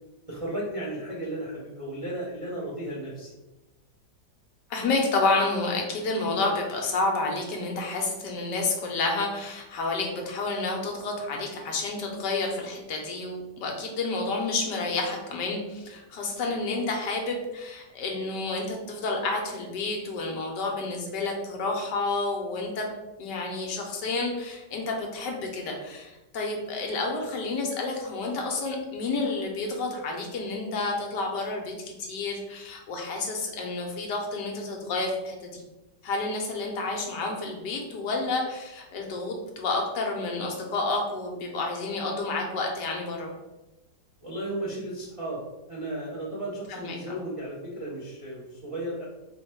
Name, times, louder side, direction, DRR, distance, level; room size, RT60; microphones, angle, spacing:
voice 1, 0.3-3.3 44.2-45.4 45.7-49.1, right 1 dB, 45° right, -5 dB, 0.4 m, -34 dB
voice 2, 4.7-22.9 23.2-35.6 36.0-43.3 46.7-47.2, left 3 dB, 75° left, 1 dB, 1.3 m, -30 dB
3.8 x 2.1 x 4.5 m, 1.0 s
omnidirectional pair, 1.9 m